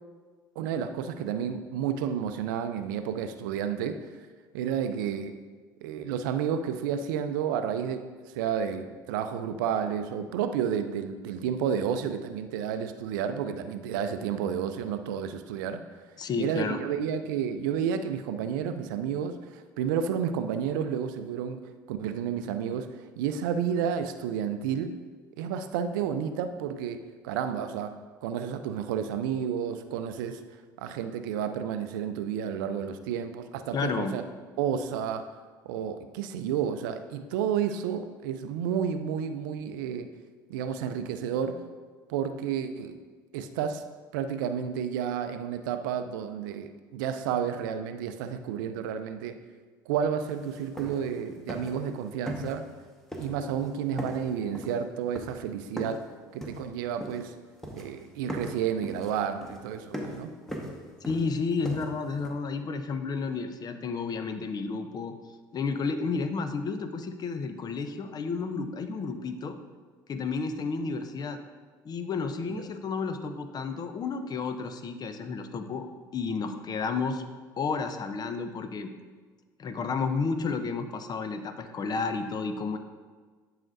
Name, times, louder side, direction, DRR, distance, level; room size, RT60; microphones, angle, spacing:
voice 1, 0.6-4.0 4.5-5.3 5.8-8.0 8.4-15.8 16.4-24.9 25.4-27.9 28.2-30.4 30.8-34.2 34.6-35.3 35.7-40.1 40.5-41.6 42.1-43.0 43.3-43.8 44.1-49.4 49.9-52.6 53.2-56.0 56.3-57.3 57.7-60.3 72.5-72.6, right 8 dB, 75° right, 9 dB, 0.5 m, -31 dB
voice 2, 16.2-16.8 33.7-34.1 61.1-65.1 65.5-69.6 70.1-71.4 71.8-75.9 76.1-77.2 77.6-78.9 79.6-82.8, left 4 dB, 40° left, 8 dB, 0.7 m, -31 dB
sound 1, 50.2-50.3 50.6-51.2 51.5-51.9 52.3-52.8 53.1-53.7 54.0-56.1 56.4-57.4 57.6-58.0 58.3-62.3, equal, 5° left, 1.3 m, -39 dB
10.5 x 4.9 x 2.6 m, 1.5 s
hypercardioid pair, 65°, 11 cm